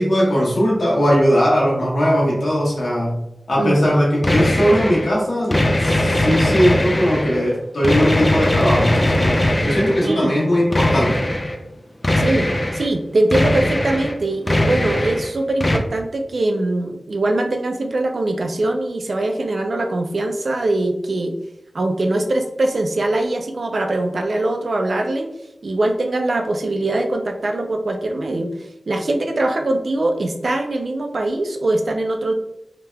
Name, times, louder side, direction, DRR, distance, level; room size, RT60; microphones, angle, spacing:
voice 1, 0.0-3.2 3.5-11.2, equal, 85° left, -5 dB, 1.1 m, -19 dB
sound 1, 4.2-5.1 5.5-7.4 7.8-10.2 10.7-11.6 12.0-12.9 13.3-14.2 14.5-15.3 15.6-15.8, left 1 dB, 35° left, 0.4 m, -19 dB
voice 2, 10.0-10.3 12.2-21.3 21.7-25.3 25.6-28.5 28.9-32.3, right 2 dB, 75° right, 4 dB, 0.4 m, -22 dB
3.3 x 2.8 x 2.2 m, 0.84 s
cardioid pair, 45°, 0 cm